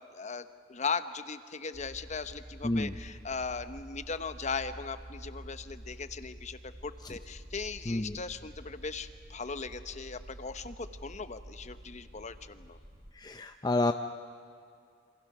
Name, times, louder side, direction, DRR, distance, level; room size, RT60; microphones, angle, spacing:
voice 1, 0.1-12.8, left 5 dB, 40° left, 11 dB, 0.9 m, -38 dB
sound 1, 1.7-13.1, right 1 dB, 55° right, 2.9 m, -48 dB
voice 2, 13.2-13.9, left 2 dB, 20° left, 7 dB, 0.6 m, -29 dB
28.0 x 25.5 x 6.1 m, 2.4 s
head